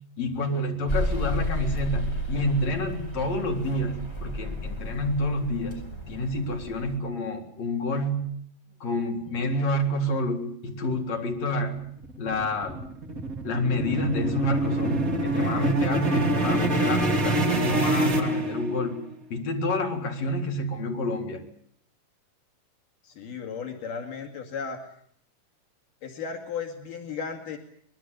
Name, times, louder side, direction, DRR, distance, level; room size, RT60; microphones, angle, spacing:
voice 1, 0.2-8.3 8.8-11.8 12.2-12.9 13.4-19.0 19.3-21.4, left 1 dB, 55° left, 2 dB, 4.9 m, -28 dB
sound 1, 0.9-7.0, left 1 dB, 20° left, 5.8 m, -32 dB
sound 2, 11.8-19.0, right 1 dB, 30° right, 2.6 m, -25 dB
voice 2, 23.0-24.8 26.0-27.6, left 6 dB, 80° left, 3 dB, 4.0 m, -35 dB
24.0 x 22.0 x 8.2 m, 0.63 s
omnidirectional pair, 3.7 m